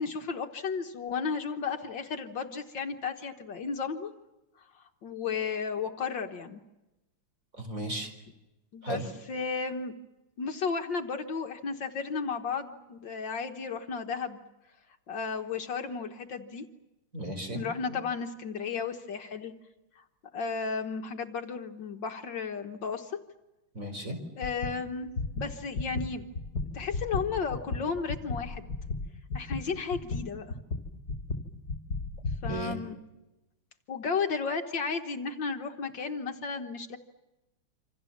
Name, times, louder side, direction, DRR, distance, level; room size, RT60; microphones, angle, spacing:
voice 1, 0.0-4.1 4.8-6.6 8.7-9.0 9.3-9.9 10.4-14.4 15.1-16.6 17.5-19.5 20.0-20.1 20.3-23.1 24.4-26.2 26.7-28.7 29.3-30.5 32.4-33.0 33.9-37.0, left 5 dB, 60° left, 5 dB, 1.8 m, -34 dB
voice 2, 7.6-8.1 8.8-9.0 17.1-18.0 23.7-24.2 32.5-32.8, right 1 dB, 40° right, 5 dB, 4.9 m, -35 dB
sound 1, 24.4-24.8 25.1-32.6, left 3 dB, 40° left, 2.6 m, -34 dB
27.5 x 26.5 x 7.3 m, 1.0 s
omnidirectional pair, 2.3 m